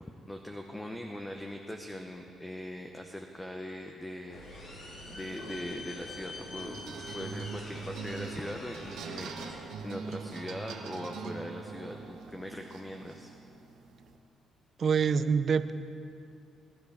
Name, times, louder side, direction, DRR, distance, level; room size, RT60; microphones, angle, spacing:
voice 1, 0.3-4.4 5.1-6.8 7.1-13.3, left 1 dB, 10° left, 3 dB, 0.9 m, -41 dB
sound 1, 4.3-9.5, left 2 dB, 75° left, 3.5 m, -44 dB
sound 2, 6.6-14.2, right 5 dB, 85° right, 1.1 m, -43 dB
voice 2, 14.8-15.7, right 6 dB, 50° right, 12 dB, 0.6 m, -25 dB
21.0 x 11.0 x 3.6 m, 2.5 s
cardioid pair, 90°, 0 cm